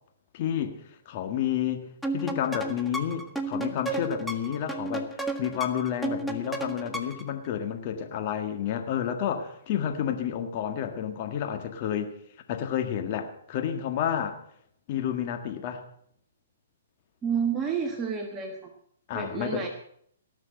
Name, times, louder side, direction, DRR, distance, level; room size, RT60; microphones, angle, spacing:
voice 1, 0.3-1.9 2.1-12.1 12.5-14.4 14.9-15.8 19.1-19.7, left 9 dB, 45° left, 6 dB, 1.7 m, -30 dB
sound 1, 2.0-7.3, right 2 dB, ahead, 1.2 m, -33 dB
voice 2, 17.2-18.7 19.1-19.7, right 6 dB, 20° right, 3 dB, 1.4 m, -29 dB
18.5 x 6.3 x 7.8 m, 0.67 s
hypercardioid pair, 135°, 0 cm